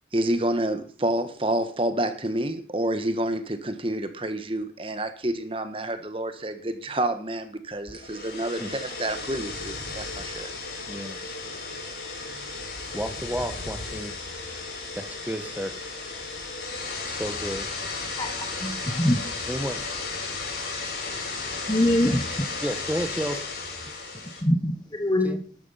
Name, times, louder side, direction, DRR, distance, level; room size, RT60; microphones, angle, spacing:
voice 1, 0.1-10.5, right 1 dB, 30° right, 9 dB, 1.5 m, -28 dB
sound 1, 7.9-24.4, left 3 dB, 60° left, 5.7 m, -34 dB
voice 2, 10.9-11.4 12.3-12.5 12.9-14.1 14.9-15.9 17.0-17.7 19.5-19.9 22.6-23.4 25.2-25.4, equal, 10° right, 8 dB, 1.5 m, -32 dB
voice 3, 18.2-19.2 21.7-22.2 24.4-25.4, left 1 dB, 20° left, 5 dB, 1.3 m, -23 dB
12.5 x 12.0 x 5.8 m, 0.41 s
head